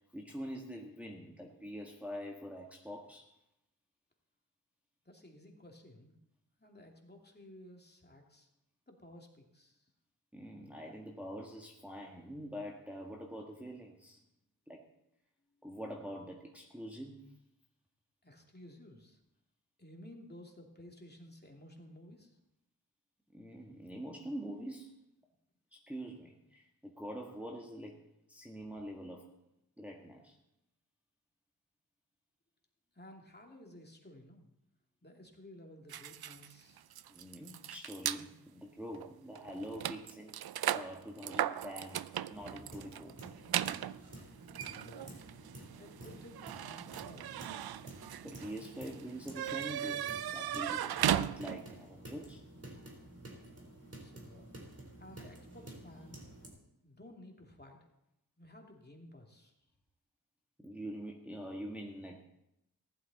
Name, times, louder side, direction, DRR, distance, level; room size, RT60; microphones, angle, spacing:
voice 1, 0.1-3.3 10.3-14.2 14.7-14.8 15.6-17.3 23.3-25.0 25.7-28.0 28.3-29.2 29.8-30.3 37.1-40.3 40.7-43.2 48.2-52.4 60.6-62.2, equal, 5° right, -1 dB, 1.7 m, -45 dB
voice 2, 5.0-6.1 6.6-8.5 8.9-9.9 18.2-19.2 19.8-22.4 32.9-34.5 35.0-36.8 44.7-45.1 45.8-47.3 54.0-54.6 55.0-56.2 56.8-57.8 58.4-59.6, left 1 dB, 25° left, 1 dB, 2.6 m, -54 dB
sound 1, 35.9-38.2 38.9-39.1 39.3-51.8, right 11 dB, 70° right, 0.5 m, -37 dB
sound 2, 42.3-56.5, right 1 dB, 40° right, 4.0 m, -51 dB
15.5 x 11.5 x 4.1 m, 0.84 s
cardioid pair, 50°, 39 cm